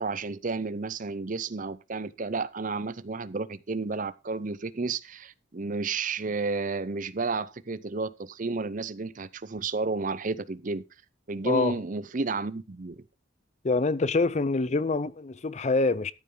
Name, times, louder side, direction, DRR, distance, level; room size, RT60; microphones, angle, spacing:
voice 1, 0.0-10.8 11.3-13.0, right 3 dB, 40° right, 0.6 m, -32 dB
voice 2, 11.4-11.8 13.6-16.1, left 3 dB, 35° left, 0.5 m, -25 dB
13.5 x 8.5 x 3.8 m
head